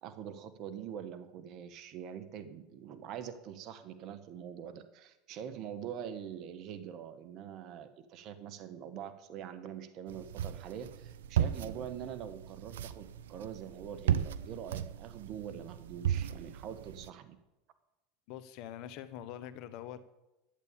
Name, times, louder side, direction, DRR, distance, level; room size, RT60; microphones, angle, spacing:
voice 1, 0.0-17.4, right 9 dB, 50° right, 11 dB, 1.4 m, -44 dB
sound 1, 10.1-17.1, right 9 dB, 85° right, 0.6 m, -36 dB
voice 2, 18.3-20.1, left 11 dB, 60° left, 12 dB, 1.2 m, -44 dB
12.0 x 8.3 x 8.8 m, 0.96 s
hypercardioid pair, 100°, 0 cm